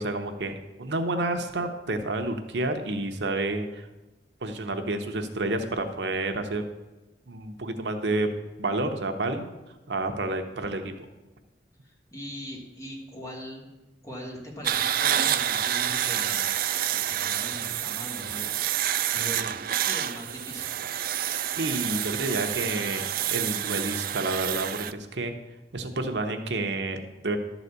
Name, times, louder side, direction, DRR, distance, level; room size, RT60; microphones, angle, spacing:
voice 1, 0.0-3.9 4.4-6.7 7.3-8.3 8.6-9.5 9.9-10.9 21.6-25.3 25.7-27.4, right 2 dB, 75° right, 6 dB, 0.9 m, -29 dB
voice 2, 11.8-13.7 14.0-16.5 16.9-20.8, equal, 20° left, -2 dB, 2.2 m, -41 dB
sound 1, 14.6-24.9, right 11 dB, 55° right, 0.4 m, -28 dB
11.5 x 4.1 x 8.0 m, 1.1 s
head